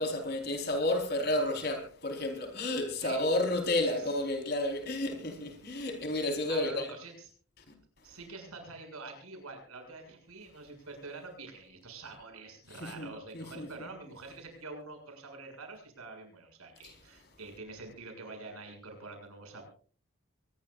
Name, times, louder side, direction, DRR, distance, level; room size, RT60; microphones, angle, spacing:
voice 1, 0.0-6.9 12.8-13.7, left 1 dB, 45° left, 4.5 m, -31 dB
voice 2, 3.7-4.1 6.5-7.3 8.0-19.6, right 3 dB, 90° right, 7.0 m, -46 dB
24.0 x 20.5 x 2.5 m
head